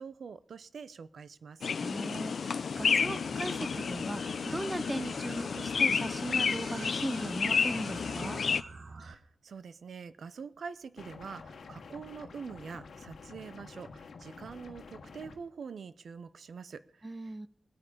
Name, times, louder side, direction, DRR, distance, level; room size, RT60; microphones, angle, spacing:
voice 1, 0.0-1.7 9.0-17.5, right 6 dB, 75° right, 15 dB, 0.7 m, -45 dB
sound 1, 1.6-8.6, left 6 dB, 65° left, 0.5 m, -31 dB
voice 2, 1.8-8.4 17.0-17.5, right 1 dB, 15° right, 14 dB, 0.6 m, -38 dB
sound 2, 2.8-9.1, right 4 dB, 60° right, 1.2 m, -47 dB
sound 3, 11.0-15.4, left 4 dB, 85° left, 1.4 m, -49 dB
20.0 x 8.5 x 5.0 m, 0.65 s
wide cardioid pair, 145°, 0 cm